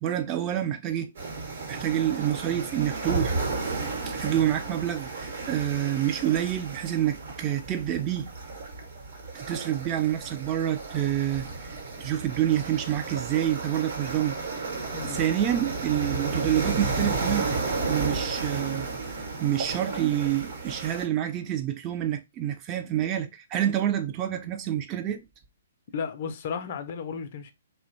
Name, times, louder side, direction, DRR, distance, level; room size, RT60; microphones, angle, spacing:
voice 1, 0.0-1.1 1.7-3.4 4.1-8.3 9.3-11.7 12.0-14.4 15.0-17.5 17.9-18.9 19.4-25.2, right 11 dB, 25° right, 0.3 m, -27 dB
sound 1, 1.1-21.0, right 3 dB, 60° right, 1.0 m, -33 dB
voice 2, 14.9-15.2 25.9-27.5, left 6 dB, 45° left, 0.4 m, -34 dB
2.7 x 2.1 x 2.6 m
figure-of-eight pair, 125°, 0 cm